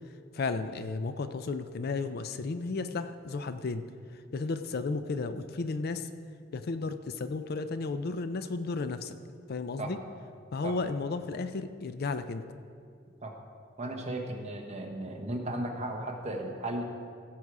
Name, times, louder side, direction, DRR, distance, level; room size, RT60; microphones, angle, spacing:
voice 1, 0.3-3.8 4.3-6.1 6.5-9.2 9.5-10.0 10.5-12.4, left 3 dB, 50° left, 10 dB, 0.4 m, -33 dB
voice 2, 13.8-16.8, right 1 dB, 35° right, 1 dB, 1.2 m, -35 dB
16.0 x 6.2 x 4.8 m, 2.3 s
head